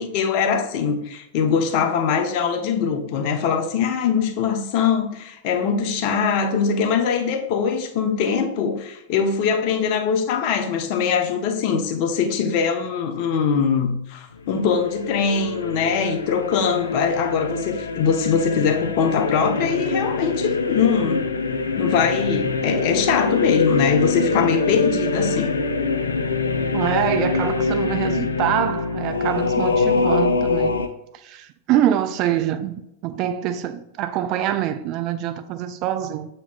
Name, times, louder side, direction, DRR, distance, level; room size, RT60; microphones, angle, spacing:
voice 1, 0.0-21.3 21.8-25.5, left 6 dB, 45° left, 0.7 m, -22 dB
sound 1, 14.4-30.9, left 4 dB, 75° left, 0.4 m, -24 dB
voice 2, 26.7-30.8 31.1-36.3, right 11 dB, 40° right, 0.4 m, -25 dB
7.0 x 3.1 x 2.3 m
figure-of-eight pair, 90°, 0 cm